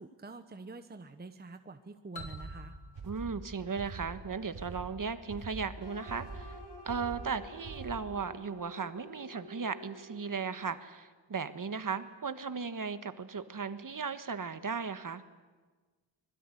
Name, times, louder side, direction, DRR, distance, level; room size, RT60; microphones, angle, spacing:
voice 1, 0.0-2.8, right 3 dB, 20° right, 8 dB, 1.0 m, -47 dB
sound 1, 2.2-4.9, left 2 dB, 75° left, 2.9 m, -51 dB
sound 2, 2.2-8.2, right 4 dB, 60° right, 3.5 m, -45 dB
voice 2, 3.0-6.5 6.8-15.2, right 5 dB, 40° right, 11 dB, 1.4 m, -36 dB
sound 3, 5.8-10.7, right 1 dB, 55° left, 6.3 m, -50 dB
25.0 x 21.5 x 9.9 m, 1.3 s
wide cardioid pair, 145°, 48 cm